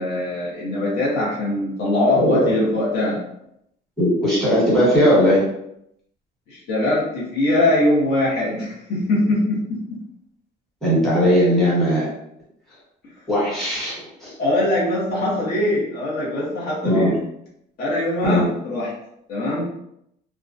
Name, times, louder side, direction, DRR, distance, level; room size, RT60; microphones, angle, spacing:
voice 1, 0.0-3.2 6.5-10.0 14.4-17.2 17.8-18.9 19.3-19.7, left 1 dB, 60° left, -5 dB, 0.8 m, -22 dB
voice 2, 2.1-2.5 4.0-5.4 10.8-12.1 13.3-14.3 16.8-17.1 18.2-18.5, equal, ahead, -9 dB, 1.1 m, -18 dB
2.3 x 2.1 x 2.5 m, 0.78 s
cardioid pair, 150°, 19 cm